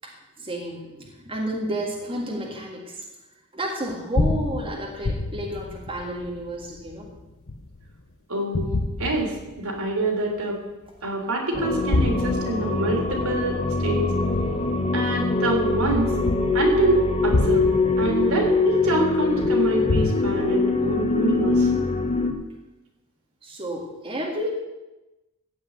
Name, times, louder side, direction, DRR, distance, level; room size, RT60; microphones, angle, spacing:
voice 1, 0.0-3.0 3.5-7.1 23.4-24.5, right 1 dB, 25° right, -1 dB, 2.0 m, -31 dB
sound 1, 3.9-8.0 8.6-9.9 10.4-10.5 11.6-15.3 15.9-20.1, left 2 dB, 65° left, 0.8 m, -29 dB
voice 2, 8.3-8.7 9.0-10.6 11.0-14.1 14.9-16.1 16.5-17.7 18.0-21.7, right 2 dB, 70° right, 0 dB, 3.5 m, -25 dB
sound 2, 11.5-22.3, left 3 dB, 25° left, 1.2 m, -23 dB
15.0 x 5.6 x 9.2 m, 1.1 s
head